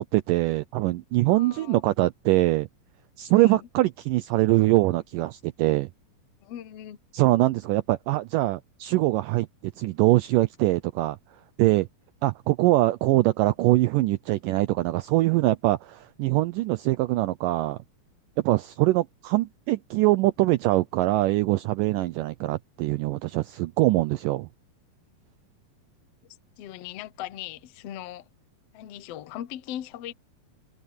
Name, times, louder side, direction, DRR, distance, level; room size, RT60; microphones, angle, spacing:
voice 1, 0.0-2.7 3.2-5.9 7.1-9.5 9.8-11.2 11.6-11.9 12.2-17.8 18.4-24.5, right 18 dB, 80° right, 2.0 m, -23 dB
voice 2, 1.2-1.8 3.3-3.7 6.4-7.0 26.6-28.3 28.7-30.1, left 12 dB, 80° left, 1.4 m, -39 dB
omnidirectional pair, 4.3 m